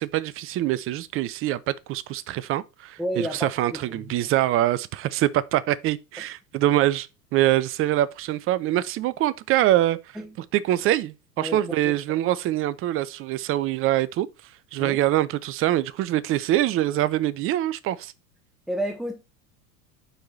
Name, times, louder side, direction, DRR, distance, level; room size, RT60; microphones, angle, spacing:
voice 1, 0.0-10.0 10.5-14.3 14.7-18.1, right 14 dB, 30° right, 0.5 m, -24 dB
voice 2, 3.0-4.0 6.2-6.3 10.2-10.4 11.4-11.9 14.8-15.0 18.7-19.2, equal, ahead, 0.8 m, -31 dB
6.5 x 4.7 x 4.0 m
hypercardioid pair, 85°, 45 cm